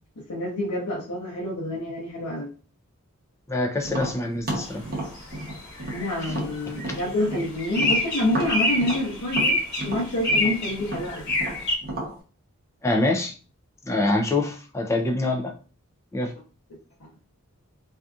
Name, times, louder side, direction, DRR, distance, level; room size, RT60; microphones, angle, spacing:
voice 1, 0.3-2.5 5.9-9.6 9.8-11.3, left 1 dB, 85° left, -5 dB, 0.8 m, -27 dB
voice 2, 3.5-4.8 12.8-13.4 13.8-15.5 16.1-16.3, left 2 dB, 15° left, 3 dB, 0.4 m, -25 dB
Tap, 3.8-7.5 7.8-12.1, right 1 dB, 45° right, 0.8 m, -32 dB
sound 1, 4.6-4.7 5.0-11.8, left 1 dB, 50° left, 1.0 m, -27 dB
2.6 x 2.3 x 2.4 m, 0.37 s
head